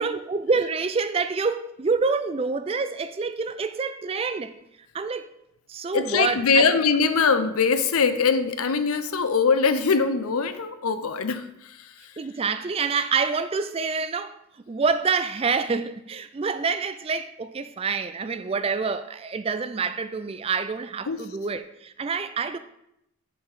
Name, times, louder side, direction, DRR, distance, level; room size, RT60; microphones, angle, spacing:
voice 1, 0.0-4.5 4.9-5.3 5.7-6.8 12.2-14.4 14.7-22.6, right 4 dB, 25° right, 0.3 m, -27 dB
voice 2, 5.9-12.1 21.1-21.2, left 5 dB, 80° left, 0.6 m, -22 dB
6.9 x 5.5 x 4.9 m
head